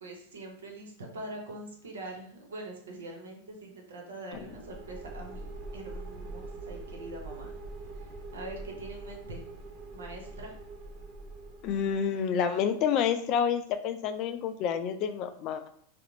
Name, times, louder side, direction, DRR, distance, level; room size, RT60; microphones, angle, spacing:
voice 1, 0.0-5.4 5.7-7.5 8.3-9.4 9.9-10.5, right 2 dB, 90° right, 1 dB, 0.7 m, -43 dB
sound 1, 4.3-12.1, right 2 dB, 45° right, 0.7 m, -43 dB
voice 2, 11.6-15.7, left 7 dB, 45° left, 8 dB, 0.3 m, -29 dB
2.5 x 2.0 x 3.1 m, 0.63 s
hypercardioid pair, 115°, 0 cm